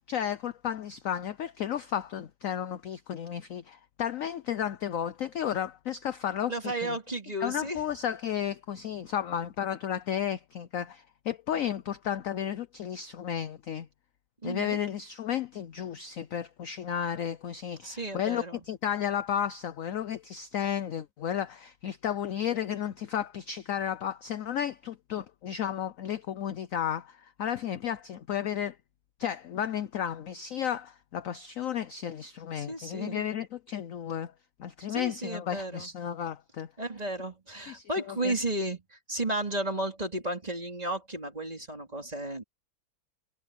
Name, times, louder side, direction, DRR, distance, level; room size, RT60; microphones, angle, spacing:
voice 1, 0.1-7.0 7.4-13.9 14.4-28.8 29.2-34.3 34.6-36.7 37.7-38.3, left 9 dB, 65° left, 0.8 m, -33 dB
voice 2, 6.5-7.8 14.4-14.8 17.8-18.6 32.6-33.3 34.9-35.9 36.8-42.4, right 1 dB, 20° right, 3.5 m, -33 dB
omnidirectional pair, 2.1 m